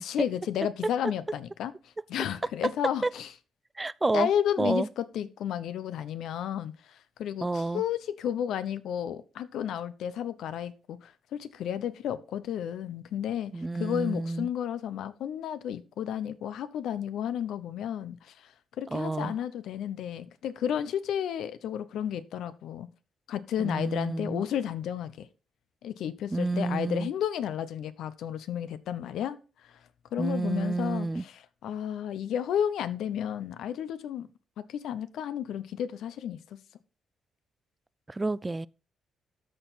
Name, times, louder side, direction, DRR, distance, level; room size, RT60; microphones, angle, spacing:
voice 1, 0.0-1.7 2.1-3.3 4.1-22.9 23.3-25.3 25.8-29.4 29.6-29.7 30.1-34.3 34.6-36.4, left 9 dB, 75° left, 0.8 m, -32 dB
voice 2, 3.8-4.3 4.6-4.9 7.4-7.8 13.5-14.5 18.9-19.3 23.6-24.4 26.3-27.1 30.2-31.2 38.1-38.7, right 2 dB, 20° right, 0.3 m, -29 dB
13.5 x 4.6 x 4.1 m
cardioid pair, 90°, 0 cm